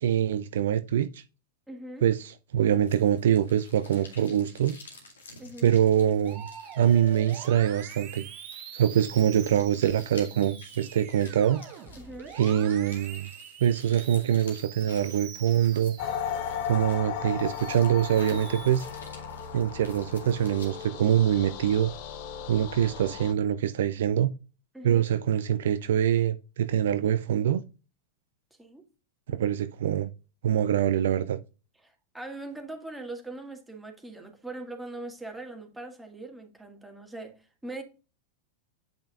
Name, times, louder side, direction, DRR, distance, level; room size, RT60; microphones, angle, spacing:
voice 1, 0.0-1.2 2.0-4.8 5.6-6.5 6.8-8.2 8.7-11.6 12.3-13.3 13.6-16.0 16.7-18.9 19.5-21.9 22.5-24.3 24.8-27.6 29.3-30.1 30.4-31.4, right 10 dB, 60° right, 0.4 m, -24 dB
voice 2, 1.7-2.1 5.4-5.8 12.0-12.3 24.7-25.0 28.6-28.8 31.8-37.4 37.6-37.8, right 2 dB, 5° right, 1.8 m, -41 dB
sound 1, 2.9-20.9, left 3 dB, 70° left, 2.1 m, -52 dB
Musical instrument, 6.2-16.7 17.1-18.7, right 9 dB, 40° right, 1.2 m, -45 dB
sound 2, 16.0-23.3, left 8 dB, 50° left, 0.8 m, -36 dB
8.6 x 5.2 x 2.4 m
figure-of-eight pair, 90°, 0 cm